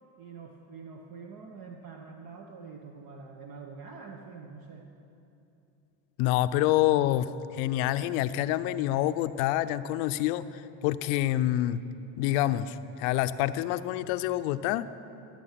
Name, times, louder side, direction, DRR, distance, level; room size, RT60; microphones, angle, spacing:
voice 1, 0.2-4.9, right 5 dB, 50° right, 2 dB, 1.1 m, -45 dB
voice 2, 6.2-11.8 12.2-14.9, left 13 dB, 75° left, 13 dB, 0.6 m, -27 dB
16.5 x 7.4 x 5.8 m, 2.8 s
supercardioid pair, 100°, 44 cm